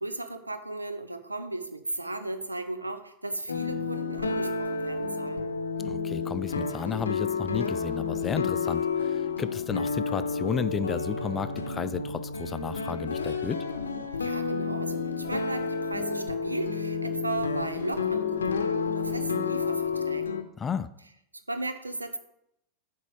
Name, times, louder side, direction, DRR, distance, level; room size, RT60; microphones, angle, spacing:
voice 1, 0.0-5.5 14.2-20.4 21.5-22.2, right 2 dB, 80° right, 9 dB, 0.7 m, -35 dB
sound 1, 3.5-20.4, left 5 dB, 70° left, 0.7 m, -30 dB
voice 2, 5.8-13.6 20.6-20.9, left 6 dB, 20° left, 14 dB, 0.4 m, -33 dB
8.2 x 4.6 x 6.3 m, 0.80 s
figure-of-eight pair, 90°, 0 cm